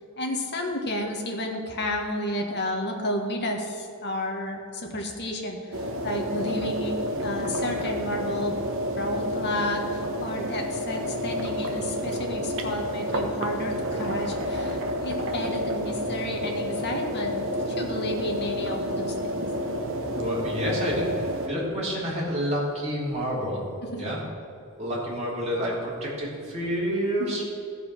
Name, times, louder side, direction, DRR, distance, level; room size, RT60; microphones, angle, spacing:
voice 1, 0.2-8.5 8.9-19.4 23.8-24.1 27.2-27.3, left 1 dB, 50° left, 2 dB, 1.5 m, -32 dB
sound 1, 5.7-21.5, equal, 65° right, 1.1 m, -30 dB
voice 2, 20.1-23.7 24.0-24.2 24.8-27.4, equal, 30° right, -6 dB, 2.9 m, -29 dB
14.5 x 5.0 x 6.1 m, 2.5 s
head